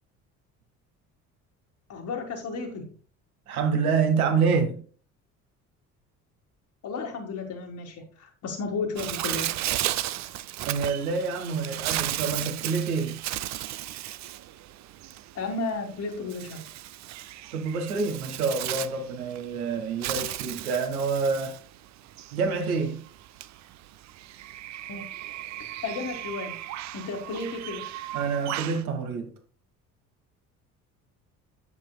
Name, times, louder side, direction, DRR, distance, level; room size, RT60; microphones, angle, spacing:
voice 1, 1.9-2.9 6.8-9.5 15.3-16.6 24.9-25.0 25.6-26.6 26.9-27.9, left 4 dB, 45° left, 1.7 m, -33 dB
voice 2, 3.5-4.8 10.7-13.2 17.5-21.6 22.3-23.0 28.1-29.3, right 5 dB, 75° right, 1.6 m, -27 dB
Bird, 9.0-28.8, right 14 dB, 40° right, 0.5 m, -35 dB
10.5 x 7.3 x 2.3 m
figure-of-eight pair, 55°, 43 cm